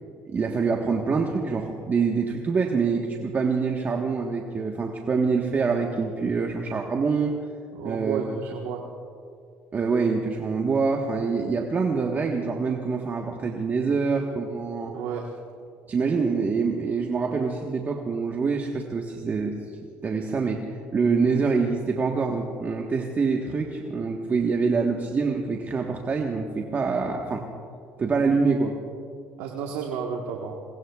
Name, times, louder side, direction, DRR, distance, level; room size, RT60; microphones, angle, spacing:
voice 1, 0.3-7.4 7.8-8.2 9.7-14.9 15.9-19.6 20.0-27.4 28.0-28.7, right 4 dB, 35° right, 2 dB, 1.3 m, -25 dB
voice 2, 7.7-8.8 14.9-15.3 29.4-30.5, right 7 dB, 80° right, 1 dB, 1.4 m, -31 dB
27.0 x 21.5 x 2.4 m, 2.3 s
supercardioid pair, 85°, 5 cm